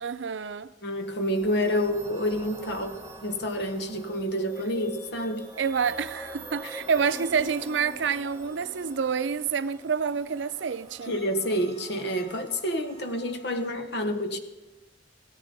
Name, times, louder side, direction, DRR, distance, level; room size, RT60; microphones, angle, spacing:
voice 1, 0.0-0.7 5.6-11.1, right 6 dB, 90° right, 0.5 m, -28 dB
voice 2, 0.8-5.5 11.1-14.4, equal, 65° left, 1.4 m, -28 dB
sound 1, 0.9-13.7, right 1 dB, 20° right, 3.1 m, -45 dB
16.5 x 14.0 x 4.1 m
head